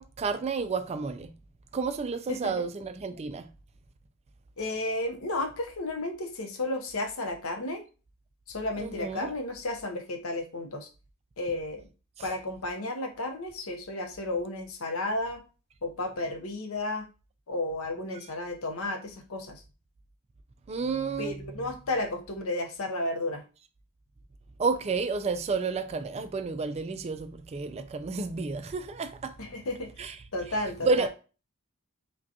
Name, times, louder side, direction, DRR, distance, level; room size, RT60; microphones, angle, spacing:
voice 1, 0.0-1.3 1.7-3.5 8.8-9.3 20.7-21.4 24.6-29.3 30.0-30.2 30.8-31.1, right 4 dB, 30° right, 0.3 m, -30 dB
voice 2, 2.3-2.6 4.6-7.8 8.5-10.9 11.4-11.8 12.2-15.4 15.8-17.1 17.5-19.6 21.2-23.4 29.4-31.1, left 2 dB, 70° left, 0.7 m, -33 dB
5.1 x 2.2 x 2.7 m
head